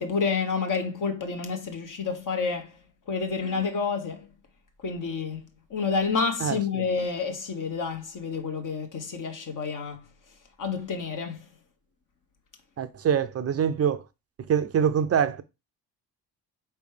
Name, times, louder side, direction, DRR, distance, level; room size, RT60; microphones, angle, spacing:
voice 1, 0.0-2.8 3.1-4.3 4.8-10.0 10.6-11.4, left 5 dB, 40° left, 1.3 m, -29 dB
voice 2, 6.4-6.8 12.8-14.0 14.5-15.4, right 8 dB, 30° right, 0.6 m, -25 dB
4.5 x 3.3 x 3.3 m
hypercardioid pair, 50°, 48 cm